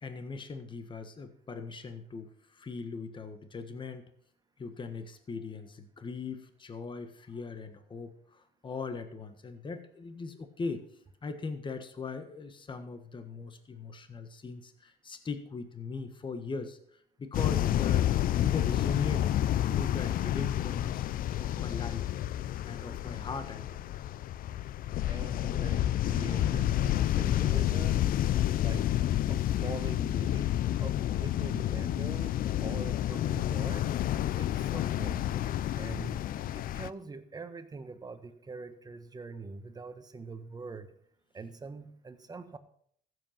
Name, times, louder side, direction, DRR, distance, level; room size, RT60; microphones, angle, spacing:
voice 1, 0.0-4.0 4.6-16.8 17.2-19.3 19.7-21.0 21.4-22.0 22.6-23.8, left 4 dB, 30° left, 9 dB, 1.5 m, -40 dB
sound 1, 17.3-36.9, left 12 dB, 55° left, 0.5 m, -29 dB
voice 2, 25.1-28.0 28.6-28.9 29.3-30.5 30.8-33.9 34.3-35.2 35.7-36.2 36.5-40.9 41.3-42.6, right 4 dB, 25° right, 9 dB, 1.3 m, -43 dB
15.0 x 8.1 x 5.8 m, 0.65 s
cardioid pair, 110°, 17 cm